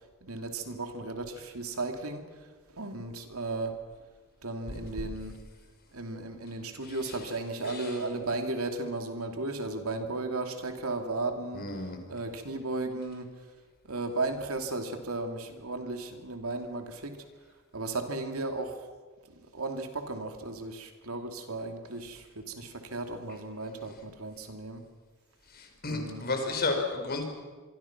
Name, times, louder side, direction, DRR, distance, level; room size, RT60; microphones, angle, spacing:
voice 1, 0.2-2.5 2.7-3.8 4.4-5.4 5.9-11.7 12.1-13.3 13.8-17.3 17.7-18.9 19.3-24.8 25.9-26.3, right 2 dB, 85° right, 5 dB, 2.8 m, -35 dB
voice 2, 11.5-12.0 25.5-27.2, left 3 dB, 45° left, 4 dB, 4.7 m, -32 dB
26.5 x 23.0 x 6.0 m, 1.4 s
head